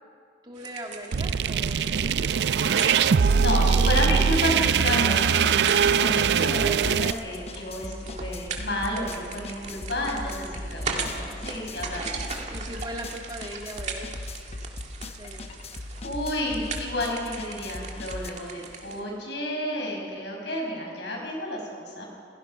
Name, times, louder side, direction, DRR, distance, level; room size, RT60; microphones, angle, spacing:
voice 1, 0.4-3.5 10.2-10.6 12.5-14.1 15.1-15.5, right 1 dB, 25° right, 1 dB, 2.1 m, -40 dB
sound 1, 0.6-19.0, right 4 dB, 40° right, 2.1 m, -39 dB
sound 2, 1.1-7.1, right 6 dB, 70° right, 0.4 m, -22 dB
sound 3, 2.6-2.8 3.1-18.3, left 2 dB, 35° left, 0.9 m, -39 dB
voice 2, 3.4-12.6 16.0-22.0, left 1 dB, 80° left, 0 dB, 6.0 m, -31 dB
28.0 x 16.5 x 5.6 m, 2.2 s
head